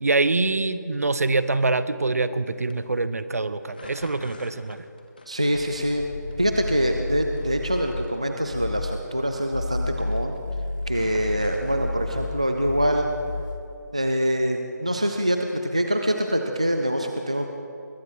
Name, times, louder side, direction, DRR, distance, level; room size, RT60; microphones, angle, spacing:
voice 1, 0.0-4.8, right 3 dB, 55° right, 13 dB, 0.7 m, -24 dB
sound 1, 2.5-2.7 3.7-6.0 6.3-7.0 7.3-9.7 9.9-10.4 10.8-12.1, left 2 dB, 30° left, 1.0 m, -47 dB
voice 2, 5.3-6.1 6.4-10.4 10.9-13.1 13.9-17.5, equal, 20° right, 4 dB, 0.3 m, -24 dB
sound 2, 5.5-8.1 8.5-9.0 9.4-13.7, left 2 dB, 80° left, 1.3 m, -32 dB
21.5 x 7.8 x 6.1 m, 2.6 s
figure-of-eight pair, 180°, 10 cm